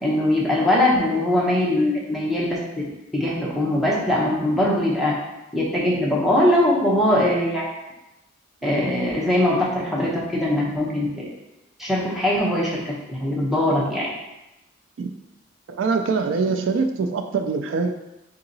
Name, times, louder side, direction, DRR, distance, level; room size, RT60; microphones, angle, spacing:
voice 1, 0.0-2.8 3.1-5.1 5.5-7.6 8.6-11.3 11.8-14.1, left 1 dB, ahead, -5 dB, 0.7 m, -21 dB
voice 2, 15.7-17.9, right 4 dB, 75° right, 6 dB, 0.3 m, -23 dB
3.7 x 2.8 x 3.9 m, 0.94 s
head